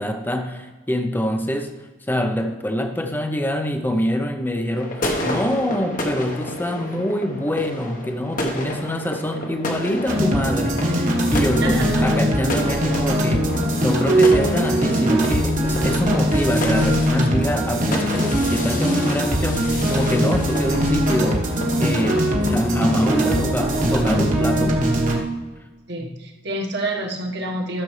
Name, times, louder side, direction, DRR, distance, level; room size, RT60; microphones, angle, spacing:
voice 1, 0.0-1.7 2.1-24.8 26.0-26.1, equal, 10° left, 6 dB, 0.7 m, -25 dB
sound 1, 4.7-24.2, left 1 dB, 45° left, 1.2 m, -31 dB
sound 2, 10.1-25.2, equal, 40° right, 1.3 m, -21 dB
voice 2, 11.6-12.0 25.9-27.8, right 1 dB, 55° right, 1 dB, 1.5 m, -27 dB
13.5 x 6.8 x 3.3 m, 1.3 s
head